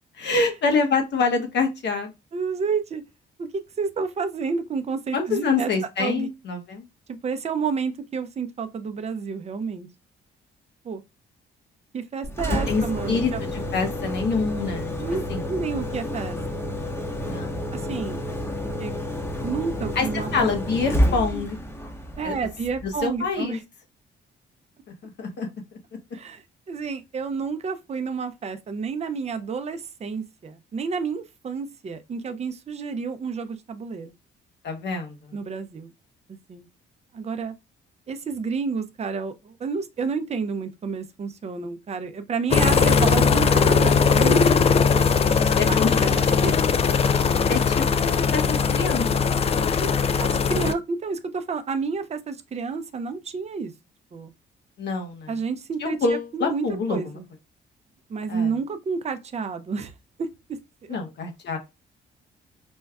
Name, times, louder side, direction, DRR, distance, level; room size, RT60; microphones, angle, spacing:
voice 1, 0.2-2.1 5.1-6.9 12.5-14.9 15.3-15.4 17.2-17.6 20.0-21.6 22.2-22.3 23.0-23.6 25.0-25.5 34.6-35.2 45.6-46.0 47.5-49.5 54.8-55.4 55.8-57.0 58.3-58.5 60.9-61.6, left 4 dB, 60° left, 0.9 m, -26 dB
voice 2, 2.3-3.0 3.4-3.5 3.8-5.7 6.0-6.3 7.2-9.9 10.8-11.0 11.9-13.5 15.0-15.2 15.5-16.7 17.7-18.5 18.8-18.9 19.4-20.5 22.2-23.6 26.1-34.1 35.3-35.9 36.3-36.7 37.1-37.5 38.1-46.6 49.8-49.9 50.2-53.7 54.1-54.3 55.3-57.3 58.1-59.9 60.2-60.3, right 5 dB, 35° right, 0.6 m, -30 dB
Engine, 12.2-23.2, equal, 10° left, 0.9 m, -29 dB
sound 1, 42.5-50.7, left 5 dB, 30° left, 0.3 m, -20 dB
5.2 x 2.2 x 2.3 m
cardioid pair, 90°, 20 cm